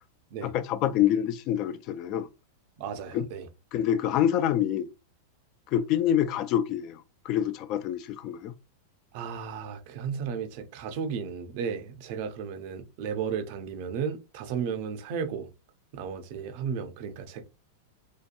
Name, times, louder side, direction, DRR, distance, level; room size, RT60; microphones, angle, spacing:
voice 1, 0.4-2.3 3.1-3.3 3.7-4.9 5.7-8.5, left 10 dB, 45° left, 0.3 m, -26 dB
voice 2, 2.8-3.5 9.1-15.5 15.9-17.5, right 6 dB, 55° right, 0.5 m, -34 dB
2.8 x 2.2 x 2.5 m
hypercardioid pair, 110°, 0 cm